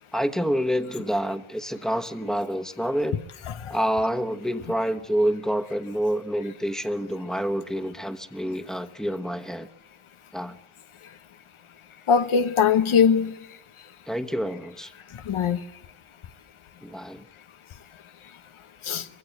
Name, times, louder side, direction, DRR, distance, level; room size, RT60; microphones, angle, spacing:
voice 1, 0.1-3.2 3.7-9.7 10.3-10.6 14.1-14.9 16.8-17.3, equal, ahead, 1.2 m, -27 dB
voice 2, 12.1-13.4 15.3-15.6 18.8-19.0, left 7 dB, 80° left, 1.1 m, -21 dB
22.0 x 16.5 x 8.2 m
cardioid pair, 65°, 49 cm